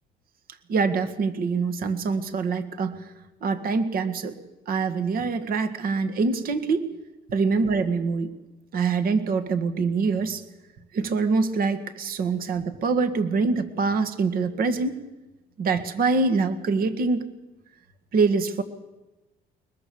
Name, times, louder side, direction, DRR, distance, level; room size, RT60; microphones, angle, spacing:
voice 1, 0.7-3.1 3.4-4.3 4.7-6.9 7.3-8.3 8.7-10.4 10.9-15.0 15.6-17.2 18.1-18.6, right 4 dB, 60° right, 10 dB, 1.9 m, -24 dB
21.5 x 21.5 x 7.1 m, 1.1 s
cardioid pair, 110°, 17 cm